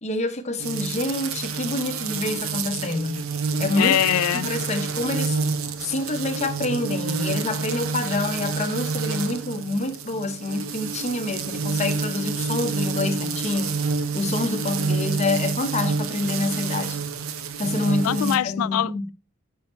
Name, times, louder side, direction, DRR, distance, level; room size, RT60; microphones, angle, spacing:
voice 1, 0.0-3.3 3.6-3.9 4.4-5.4 5.8-13.7 14.1-17.0 17.6-19.1, left 2 dB, 30° left, 0.8 m, -27 dB
sound 1, 0.6-18.4, right 4 dB, 75° right, 0.7 m, -28 dB
voice 2, 3.8-4.5 18.0-19.1, left 11 dB, 90° left, 0.3 m, -23 dB
5.8 x 5.6 x 4.4 m
head